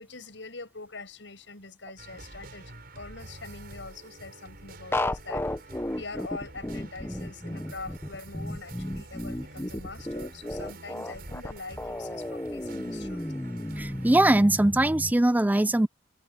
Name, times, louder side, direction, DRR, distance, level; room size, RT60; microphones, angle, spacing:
voice 1, 0.0-13.2, left 3 dB, 75° left, 6.3 m, -44 dB
sound 1, 2.0-14.2, right 2 dB, 55° right, 5.5 m, -47 dB
sound 2, 4.9-15.1, left 1 dB, 15° left, 0.9 m, -34 dB
voice 2, 13.8-15.9, right 1 dB, 10° right, 0.4 m, -21 dB
head